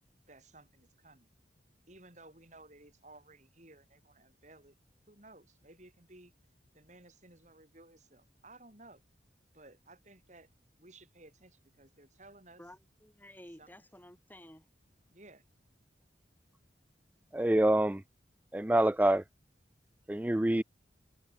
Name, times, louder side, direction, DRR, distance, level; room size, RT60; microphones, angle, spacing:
voice 1, 0.3-1.3 1.9-4.8 5.1-6.3 6.7-9.0 9.5-10.5 10.8-12.6 13.6-13.7 15.1-15.4, right 2 dB, 40° right, 7.3 m, -57 dB
voice 2, 12.6-14.7, left 1 dB, 10° left, 7.4 m, -53 dB
voice 3, 17.3-18.0 18.5-19.2 20.1-20.6, right 1 dB, 10° right, 0.3 m, -26 dB
head